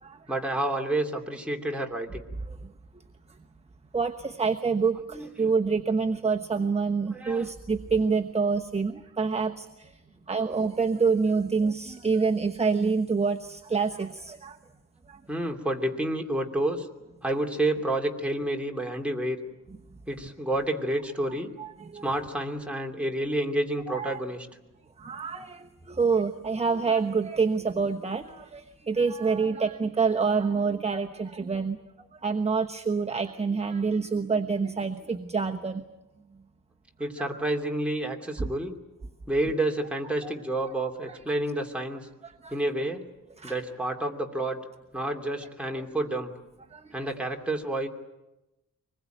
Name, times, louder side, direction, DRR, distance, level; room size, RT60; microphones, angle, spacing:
voice 1, 0.3-2.3 5.1-5.5 7.1-7.5 10.4-10.6 15.3-16.9 17.2-19.4 20.1-21.5 22.0-24.5 37.0-38.7 39.3-42.1 42.5-43.0 43.4-44.6 44.9-46.3 46.9-47.9, right 1 dB, 5° right, 1 dB, 2.7 m, -29 dB
voice 2, 3.9-9.7 10.3-14.5 21.6-22.0 23.9-24.2 25.0-31.8 32.2-35.8 37.3-37.4 38.4-38.5 40.2-40.3 42.4-42.5 43.4-43.5 45.7-45.8, right 5 dB, 20° right, 4 dB, 1.1 m, -27 dB
24.5 x 21.0 x 9.2 m, 0.99 s
wide cardioid pair, 130°, 31 cm